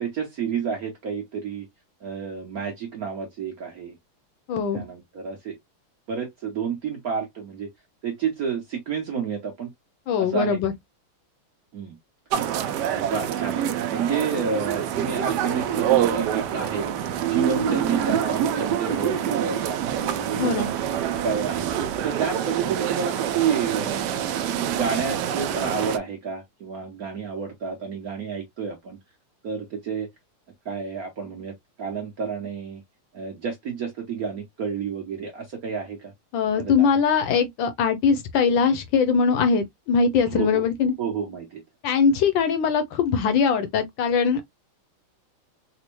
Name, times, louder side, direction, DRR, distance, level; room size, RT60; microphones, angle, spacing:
voice 1, 0.0-1.7 2.0-4.0 4.5-5.6 6.1-7.7 8.0-9.7 10.2-10.6 11.7-12.0 12.9-13.6 13.9-19.9 20.3-20.7 21.1-21.7 22.0-24.1 24.4-29.0 29.4-30.1 30.6-32.8 33.1-36.1 36.6-36.9 40.2-40.6 41.0-41.6, right 6 dB, 60° right, 1.0 m, -30 dB
voice 2, 4.5-4.8 10.1-10.7 20.4-20.7 36.3-40.9 41.8-44.5, left 6 dB, 70° left, 1.2 m, -21 dB
sound 1, 12.3-26.0, right 9 dB, 90° right, 0.9 m, -26 dB
4.2 x 2.1 x 3.0 m
omnidirectional pair, 2.4 m